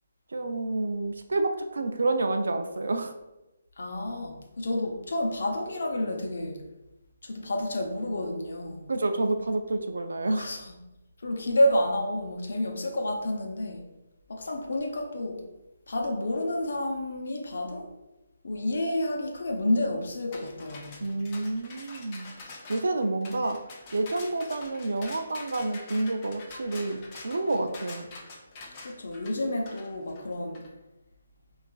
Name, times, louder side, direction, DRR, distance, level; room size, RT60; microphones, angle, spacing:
voice 1, 0.3-3.1 8.9-10.6 21.0-22.3 22.7-23.6 23.9-28.1, right 2 dB, 85° right, 7 dB, 0.4 m, -29 dB
voice 2, 3.8-6.6 7.2-8.8 10.4-10.8 11.2-13.8 14.3-15.4 15.9-17.9 18.4-21.0 28.8-30.6, left 1 dB, 65° left, 2 dB, 0.6 m, -29 dB
sound 1, 20.3-30.7, left 3 dB, 20° left, 0.4 m, -46 dB
4.5 x 2.3 x 2.3 m, 0.99 s
hypercardioid pair, 175°, 0 cm